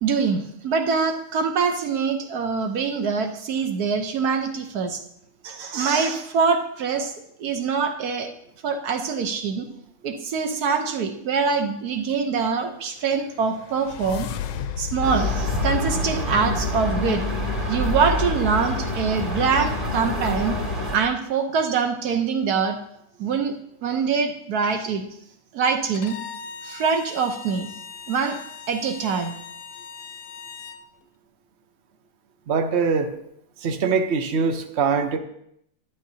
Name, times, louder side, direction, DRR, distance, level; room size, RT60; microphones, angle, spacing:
voice 1, 0.0-5.0 5.4-8.3 8.6-9.7 10.0-14.3 14.8-17.2 17.7-20.6 20.9-22.8 23.2-23.5 23.8-25.1 25.5-26.1 26.6-27.7 28.1-28.4 28.7-29.3, right 5 dB, 60° right, 6 dB, 1.0 m, -24 dB
sound 1, 13.0-17.2, left 8 dB, 70° left, 1.1 m, -35 dB
sound 2, 15.0-21.0, left 1 dB, 20° right, 1.7 m, -26 dB
Bowed string instrument, 25.9-30.8, left 6 dB, 85° left, 1.6 m, -40 dB
voice 2, 32.5-33.1 33.6-35.2, right 5 dB, 85° right, 5 dB, 0.5 m, -22 dB
11.5 x 11.0 x 2.7 m, 0.74 s
omnidirectional pair, 2.4 m